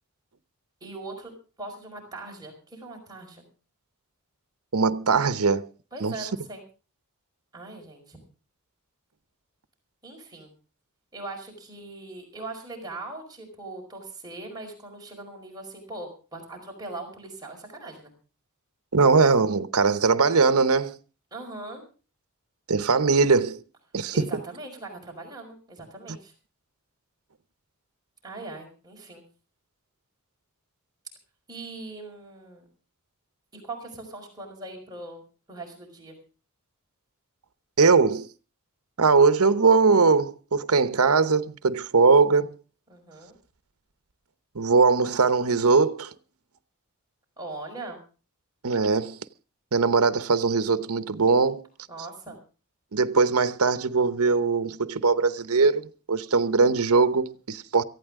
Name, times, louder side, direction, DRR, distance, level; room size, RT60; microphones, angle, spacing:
voice 1, 0.8-1.3 1.6-3.4 5.9-6.6 7.5-8.2 10.0-10.5 11.1-18.1 21.3-21.8 24.1-26.3 28.2-29.2 31.5-32.7 33.5-35.2 35.5-36.2 42.9-43.4 47.4-48.0 51.9-52.4, right 2 dB, 20° right, 4.9 m, -40 dB
voice 2, 4.7-5.7 6.0-6.3 18.9-20.9 22.7-23.6 23.9-24.3 37.8-38.3 39.0-42.5 44.5-46.1 48.6-49.2 49.7-51.6 52.9-57.8, right 4 dB, 80° right, 0.9 m, -21 dB
18.0 x 15.0 x 3.6 m
head